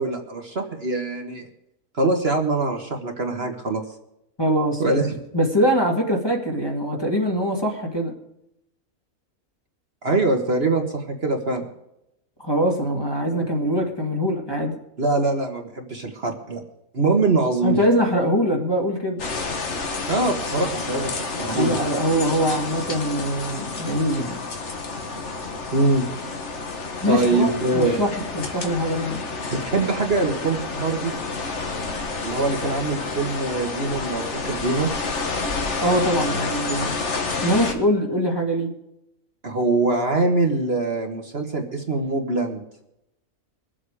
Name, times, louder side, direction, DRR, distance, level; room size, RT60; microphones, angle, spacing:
voice 1, 0.0-1.5 1.9-3.8 4.8-5.2 10.0-11.7 15.0-16.6 16.9-17.9 20.1-21.8 25.7-26.1 27.1-28.0 29.5-31.1 32.2-34.9 39.4-42.6, right 2 dB, 45° right, 3 dB, 1.7 m, -23 dB
voice 2, 4.4-5.0 5.3-8.1 12.4-14.8 17.6-19.2 21.5-24.4 27.0-29.3 35.8-37.0 37.4-38.7, equal, 15° left, 1 dB, 2.1 m, -23 dB
sound 1, 19.2-37.7, left 3 dB, 55° left, 1.8 m, -29 dB
23.0 x 7.8 x 4.9 m, 0.83 s
omnidirectional pair, 1.5 m